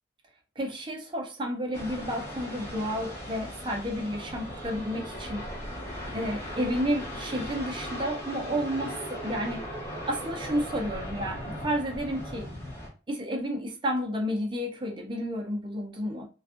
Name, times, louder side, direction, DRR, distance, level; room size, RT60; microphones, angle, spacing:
voice 1, 0.6-5.5 6.1-9.6 10.1-12.5 13.1-16.3, equal, 25° right, 0.5 m, -31 dB
sound 1, 1.7-12.9, equal, 15° left, 0.8 m, -38 dB
2.5 x 2.3 x 2.4 m
head